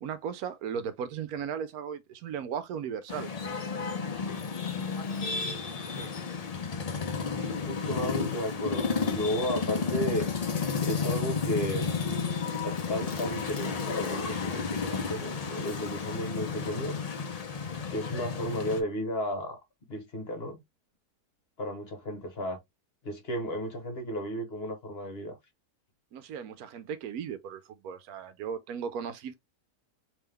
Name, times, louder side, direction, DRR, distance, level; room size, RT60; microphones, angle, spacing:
voice 1, 0.0-3.3 26.1-29.3, right 7 dB, 75° right, 1.0 m, -36 dB
sound 1, 3.1-18.8, left 5 dB, 80° left, 0.3 m, -32 dB
voice 2, 7.6-10.3 10.8-11.9 12.4-17.1 17.9-19.6 19.9-20.6 21.6-22.6 23.0-25.4, equal, 45° left, 1.2 m, -34 dB
3.6 x 3.0 x 3.2 m
omnidirectional pair, 1.6 m